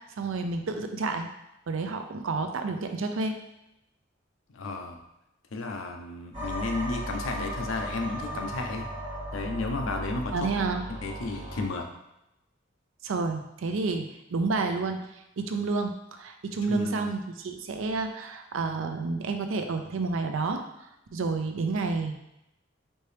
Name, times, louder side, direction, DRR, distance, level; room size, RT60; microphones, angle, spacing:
voice 1, 0.2-1.3 1.7-3.4 10.3-10.8 13.0-15.1 15.4-20.6 21.1-22.1, right 3 dB, 80° right, 6 dB, 0.5 m, -30 dB
voice 2, 4.5-5.0 5.5-8.9 9.3-10.5 10.9-11.9 16.7-17.1, left 3 dB, 85° left, 3 dB, 0.6 m, -33 dB
sound 1, 6.3-11.6, equal, 30° right, 1.5 m, -36 dB
4.4 x 2.8 x 3.3 m, 0.87 s
head